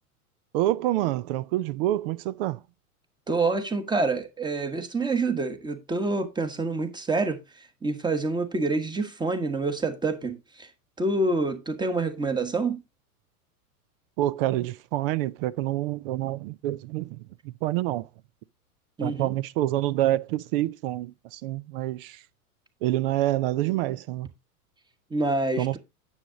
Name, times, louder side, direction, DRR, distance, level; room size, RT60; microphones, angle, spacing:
voice 1, 0.5-2.6 14.2-18.1 19.0-22.2 22.8-24.3 25.6-25.8, right 15 dB, 40° right, 0.4 m, -27 dB
voice 2, 3.3-10.7 11.0-12.8 19.0-19.3 25.1-25.8, right 3 dB, 10° right, 1.4 m, -27 dB
9.8 x 7.2 x 3.8 m
hypercardioid pair, 100°, 45 cm